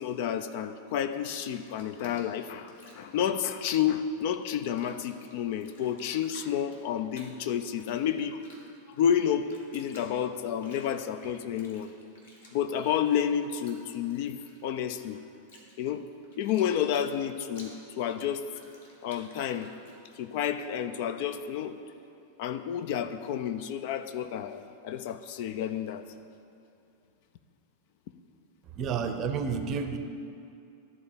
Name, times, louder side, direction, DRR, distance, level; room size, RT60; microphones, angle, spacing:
voice 1, 0.0-8.4 8.9-11.9 12.5-15.2 15.8-16.0 16.4-18.5 19.0-19.7 20.2-21.8 22.4-26.0, left 9 dB, 50° left, 10 dB, 0.4 m, -30 dB
Bathtub (filling or washing), 1.2-4.2 4.5-20.5, left 1 dB, 65° left, 1.6 m, -55 dB
voice 2, 28.7-30.0, right 6 dB, 35° right, 7 dB, 0.6 m, -30 dB
12.0 x 4.2 x 7.2 m, 2.6 s
figure-of-eight pair, 90°, 0 cm